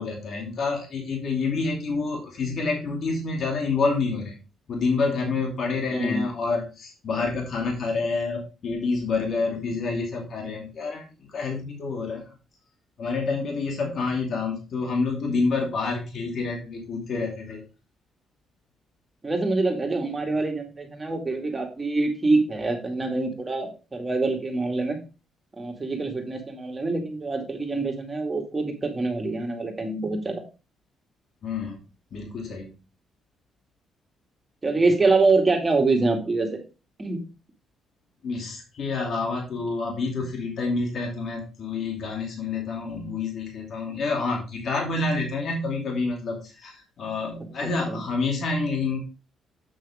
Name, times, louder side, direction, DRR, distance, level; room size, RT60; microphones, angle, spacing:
voice 1, 0.0-4.4 4.7-11.0 11.3-12.2 13.0-17.6 31.4-31.8 32.1-32.7 38.2-49.0, left 4 dB, 60° left, 1 dB, 2.6 m, -28 dB
voice 2, 5.9-6.2 19.2-25.0 25.6-30.4 34.6-36.6 37.0-37.2 47.9-48.0, right 3 dB, 25° right, 2 dB, 2.4 m, -25 dB
7.9 x 6.4 x 3.7 m, 0.31 s
cardioid pair, 90°, 0 cm